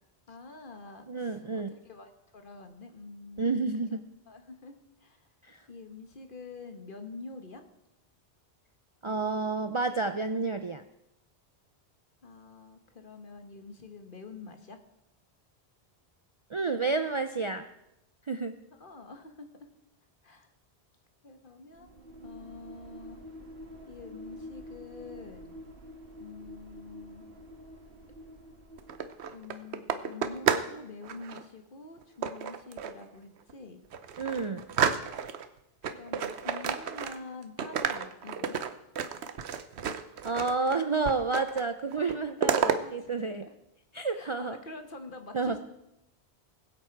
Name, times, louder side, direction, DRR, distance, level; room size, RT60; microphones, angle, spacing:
voice 1, 0.3-3.7 4.3-5.2 5.7-7.6 12.2-14.8 18.8-19.7 20.2-20.5 21.2-21.9 22.2-23.2 23.9-25.5 26.2-27.3 29.0-33.8 35.8-38.6 42.8-43.5 44.1-45.6, left 3 dB, 50° left, 7 dB, 1.5 m, -46 dB
voice 2, 1.1-1.7 3.4-4.0 5.4-5.6 9.0-10.8 16.5-17.7 18.3-18.6 34.2-34.6 40.2-43.5 43.9-44.6 45.3-45.6, right 4 dB, 40° right, 8 dB, 0.4 m, -30 dB
sound 1, 21.7-29.5, equal, 60° right, 1.6 m, -48 dB
sound 2, 28.8-30.8 31.0-31.4 32.2-33.0 33.5-33.6 33.9-35.5 35.8-37.3 37.6-40.8 41.1-41.7 41.9-42.8, right 7 dB, 80° right, 1.0 m, -31 dB
21.0 x 7.7 x 4.6 m, 0.88 s
omnidirectional pair, 1.1 m